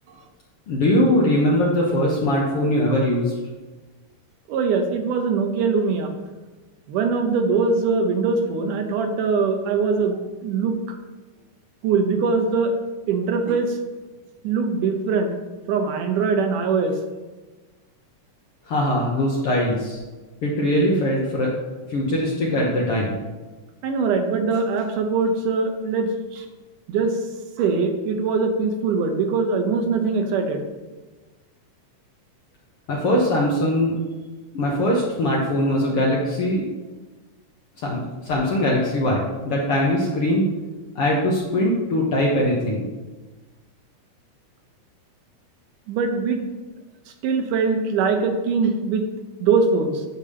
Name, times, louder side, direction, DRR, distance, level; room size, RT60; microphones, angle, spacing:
voice 1, 0.7-3.3 18.7-20.0 20.4-21.5 21.9-23.2 32.9-33.9 34.5-36.6 37.8-40.5 40.9-42.9, left 1 dB, 65° left, -3 dB, 1.5 m, -21 dB
voice 2, 4.5-6.1 6.9-10.8 11.8-12.8 13.1-13.8 14.4-15.3 15.7-17.0 23.8-26.5 26.9-27.2 27.6-30.7 45.9-46.4 47.1-49.1 49.4-50.1, right 4 dB, 75° right, 5 dB, 2.3 m, -22 dB
9.2 x 3.4 x 6.7 m, 1.2 s
omnidirectional pair, 3.8 m